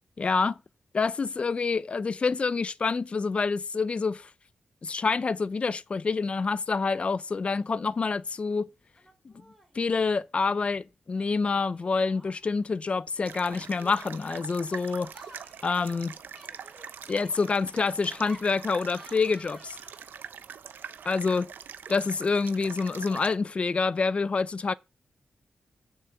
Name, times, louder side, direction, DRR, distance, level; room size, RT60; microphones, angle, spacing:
voice 1, 0.2-0.6 0.9-4.3 4.8-8.7 9.2-9.3 9.7-15.1 15.6-16.2 17.1-19.8 21.0-21.5 21.9-24.7, left 4 dB, 35° left, 0.5 m, -27 dB
Laughter, 7.2-7.7 7.9-8.6 9.0-9.8 11.1-12.6 13.3-20.2, equal, 5° left, 3.6 m, -54 dB
sound 1, 13.2-23.4, right 7 dB, 85° right, 0.8 m, -44 dB
7.4 x 6.7 x 7.9 m
wide cardioid pair, 125°, 3 cm